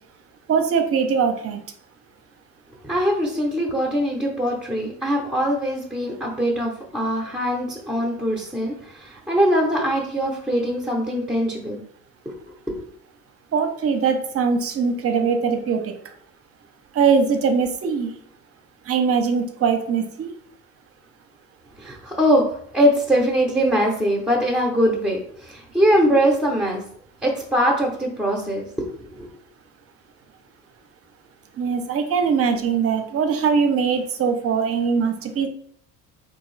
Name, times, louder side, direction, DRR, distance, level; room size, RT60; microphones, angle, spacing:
voice 1, 0.5-1.6 13.5-15.9 16.9-18.1 18.9-20.3 31.6-35.5, right 6 dB, 40° right, 6 dB, 0.6 m, -21 dB
voice 2, 2.8-11.8 12.3-12.4 12.7-12.8 21.8-26.8 27.2-29.3, equal, 5° right, -2 dB, 0.7 m, -22 dB
3.6 x 2.7 x 3.2 m, 0.63 s
supercardioid pair, 90°, 36 cm